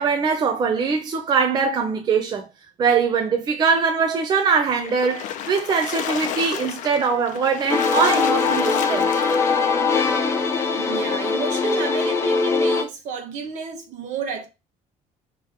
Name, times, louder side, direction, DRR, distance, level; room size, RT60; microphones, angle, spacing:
voice 1, 0.0-2.5 2.8-9.2, right 5 dB, 30° right, 0.5 m, -22 dB
Splash splatter, 4.8-9.7, left 10 dB, 65° left, 0.5 m, -32 dB
sound 1, 7.7-12.8, left 4 dB, 20° left, 0.6 m, -21 dB
voice 2, 10.6-14.5, right 5 dB, 60° right, 1.2 m, -31 dB
4.9 x 3.0 x 3.4 m
cardioid pair, 165°, 14 cm